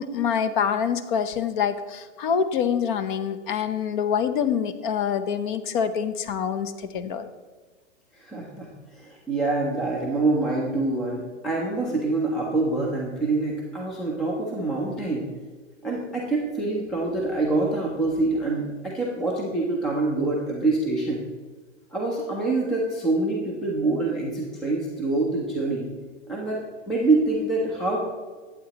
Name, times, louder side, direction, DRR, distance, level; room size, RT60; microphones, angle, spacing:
voice 1, 0.0-7.3, left 7 dB, 40° left, 11 dB, 0.7 m, -26 dB
voice 2, 8.1-15.3 15.8-21.2 21.9-25.9 26.3-28.0, right 2 dB, ahead, -2 dB, 0.3 m, -26 dB
12.0 x 8.1 x 2.9 m, 1.4 s
hypercardioid pair, 130°, 38 cm